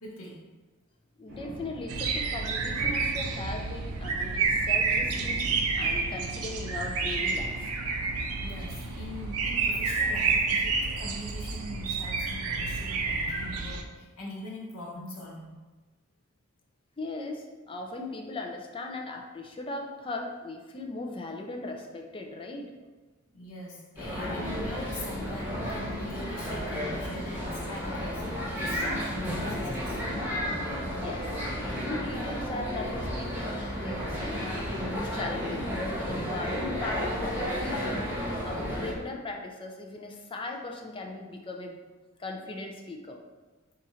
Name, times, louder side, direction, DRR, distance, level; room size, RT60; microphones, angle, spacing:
voice 1, 0.0-0.5 8.4-15.6 23.3-30.2, left 1 dB, 85° left, -4 dB, 0.9 m, -42 dB
voice 2, 1.2-7.7 17.0-22.8 30.8-41.8 42.2-43.2, left 2 dB, 25° left, 2 dB, 0.4 m, -38 dB
Thunder, 1.3-6.4, equal, 50° right, 0.8 m, -43 dB
sound 1, 1.9-13.8, right 4 dB, 85° right, 0.5 m, -29 dB
sound 2, 24.0-38.9, equal, 10° right, 0.9 m, -32 dB
4.0 x 2.5 x 4.2 m, 1.3 s
head